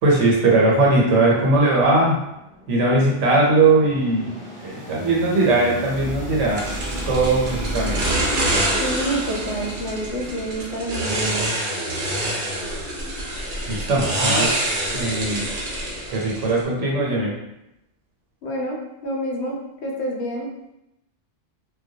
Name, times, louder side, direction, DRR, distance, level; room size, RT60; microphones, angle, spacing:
voice 1, 0.0-2.2 2.7-4.3 4.6-6.6 7.0-8.2 13.7-14.6 14.9-15.5 16.1-17.3, right 2 dB, 80° right, -3 dB, 1.0 m, -19 dB
sound 1, 2.3-10.9, right 1 dB, 10° right, 0.7 m, -34 dB
sound 2, 6.6-16.6, right 1 dB, 55° right, 0.7 m, -26 dB
voice 2, 8.8-11.5 18.4-18.8 19.0-20.5, right 1 dB, 70° left, -1 dB, 0.8 m, -28 dB
2.2 x 2.1 x 2.6 m, 0.87 s
omnidirectional pair, 1.2 m